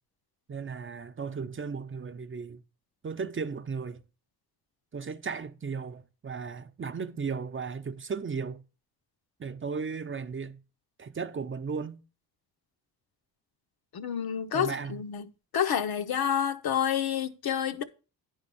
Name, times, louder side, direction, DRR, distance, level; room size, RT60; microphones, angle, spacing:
voice 1, 0.5-2.6 3.0-4.0 4.9-8.6 9.4-10.6 11.0-12.0 14.5-15.0, right 5 dB, 30° right, 0.7 m, -35 dB
voice 2, 13.9-15.3 15.5-17.8, left 9 dB, 70° left, 0.9 m, -29 dB
9.8 x 3.6 x 6.9 m
cardioid pair, 85°, 39 cm